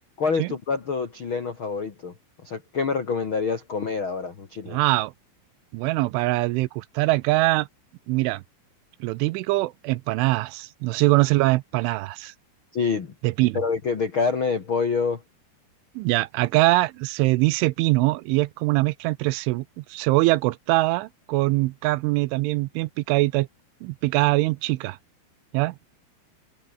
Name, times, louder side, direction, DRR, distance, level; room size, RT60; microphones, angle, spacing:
voice 1, 0.2-2.1 2.4-4.8 12.7-13.1 13.5-15.2, left 5 dB, 70° left, 1.2 m, -26 dB
voice 2, 4.7-5.1 5.7-7.7 8.1-8.4 9.0-12.3 13.2-13.6 16.0-23.5 23.8-25.0 25.5-25.8, right 20 dB, 80° right, 3.0 m, -23 dB
omnidirectional pair, 5.8 m